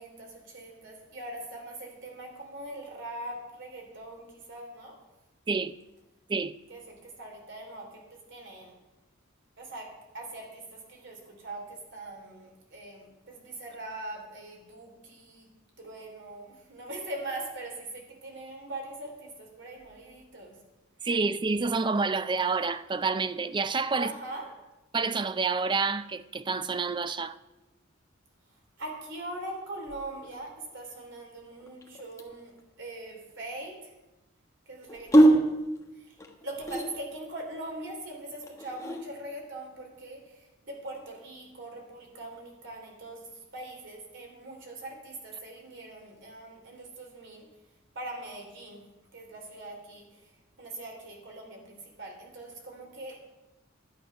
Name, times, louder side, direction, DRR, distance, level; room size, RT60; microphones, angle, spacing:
voice 1, 0.0-5.0 6.7-8.8 9.6-9.9 10.1-15.5 15.8-20.5 24.0-24.5 28.8-33.9 34.7-35.4 36.0-36.2 36.4-47.5 47.9-48.8 49.1-50.3 50.6-53.2, right 2 dB, 65° right, 3.1 m, -42 dB
voice 2, 21.0-24.1 24.9-27.4, right 4 dB, 25° right, 0.4 m, -28 dB
sound 1, 29.8-30.6 31.5-32.6 34.8-37.3 38.4-39.0, right 1 dB, 15° left, 1.2 m, -24 dB
11.5 x 8.8 x 5.7 m
head